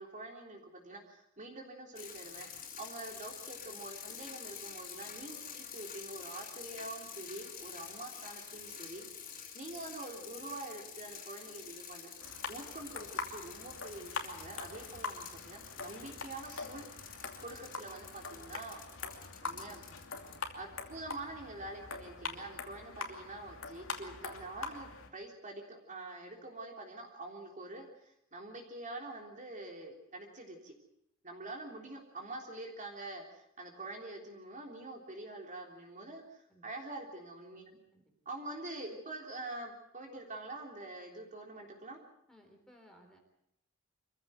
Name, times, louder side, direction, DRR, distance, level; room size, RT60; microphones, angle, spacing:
voice 1, 0.0-9.1 9.5-16.9 17.4-18.8 19.4-19.9 20.5-30.7 31.2-37.8 38.3-42.0, right 2 dB, 35° right, 1 dB, 3.5 m, -46 dB
sound 1, 1.9-20.4, left 7 dB, 45° left, 4.0 m, -48 dB
sound 2, 12.2-25.1, left 4 dB, 65° left, 2.7 m, -44 dB
voice 2, 42.3-43.2, equal, 5° left, 2 dB, 3.6 m, -60 dB
25.0 x 15.0 x 8.0 m, 0.76 s
head